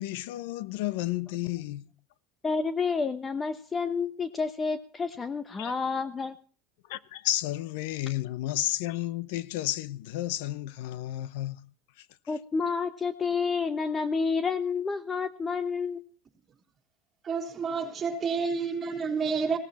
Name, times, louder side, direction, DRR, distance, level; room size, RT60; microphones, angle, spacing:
voice 1, 0.0-1.8 5.6-5.7 6.9-11.7 12.0-12.1, left 15 dB, 80° left, 0.8 m, -32 dB
voice 2, 2.4-6.3 12.3-16.0 17.7-17.8, left 5 dB, 20° left, 0.9 m, -29 dB
voice 3, 17.2-19.6, right 5 dB, 25° right, 3.6 m, -29 dB
17.0 x 14.5 x 4.2 m
supercardioid pair, 135°, 0 cm